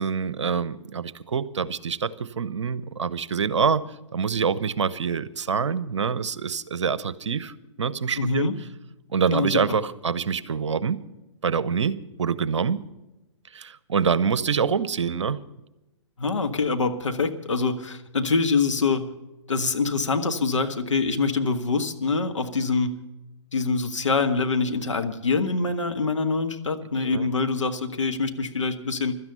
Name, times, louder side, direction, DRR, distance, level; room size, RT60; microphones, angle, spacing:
voice 1, 0.0-3.8 4.1-7.5 7.8-8.5 9.1-11.0 11.4-12.8 13.5-15.4 27.0-27.3, right 6 dB, 65° right, 17 dB, 0.9 m, -26 dB
voice 2, 8.2-8.5 9.3-9.8 16.2-19.1 19.5-23.0 23.5-29.2, left 4 dB, 75° left, 6 dB, 1.6 m, -25 dB
17.0 x 12.5 x 5.6 m, 0.96 s
figure-of-eight pair, 120°, 16 cm